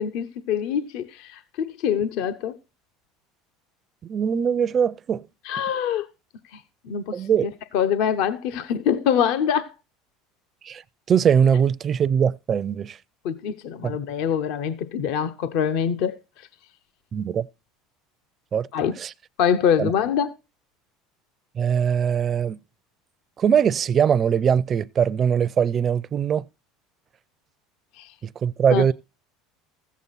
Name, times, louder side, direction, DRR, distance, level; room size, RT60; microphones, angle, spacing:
voice 1, 0.0-2.6 5.5-6.1 6.8-9.7 13.2-16.2 18.7-18.9 19.4-20.3 28.0-28.1 28.7-28.8, left 8 dB, 70° left, 0.8 m, -24 dB
voice 2, 4.0-5.2 7.1-7.5 10.6-10.8 11.1-13.0 13.8-14.0 17.1-17.5 18.5-18.7 19.0-19.1 19.8-19.9 21.5-22.6 23.4-26.4 28.2-28.9, right 7 dB, 35° right, 0.5 m, -21 dB
14.5 x 8.3 x 4.1 m
supercardioid pair, 110°, 0 cm